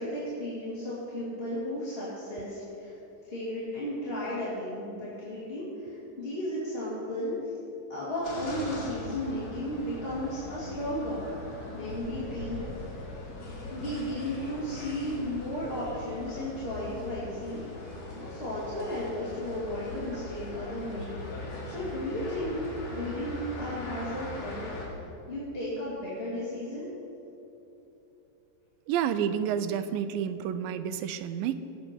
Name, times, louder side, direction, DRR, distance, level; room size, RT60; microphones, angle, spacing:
voice 1, 0.0-2.9 3.2-7.3 7.9-11.2 11.7-12.7 13.7-21.2 21.6-22.6 22.9-25.0 25.3-26.9, left 1 dB, 20° left, -9 dB, 1.8 m, -34 dB
sound 1, 8.2-24.9, left 2 dB, 55° left, 3.1 m, -40 dB
voice 2, 28.9-31.6, right 8 dB, 85° right, 12 dB, 2.3 m, -30 dB
17.5 x 7.8 x 4.4 m, 3.0 s
omnidirectional pair, 4.0 m